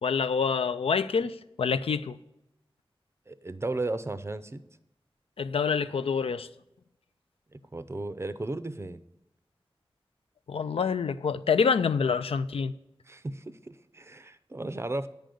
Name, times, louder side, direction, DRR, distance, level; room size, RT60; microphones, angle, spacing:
voice 1, 0.0-2.2 5.4-6.5 10.5-12.7, left 5 dB, 90° left, 12 dB, 0.4 m, -27 dB
voice 2, 3.3-4.6 7.5-9.0 13.1-15.1, right 2 dB, 30° right, 13 dB, 0.5 m, -35 dB
9.3 x 5.1 x 7.6 m, 0.85 s
wide cardioid pair, 80°, 9 cm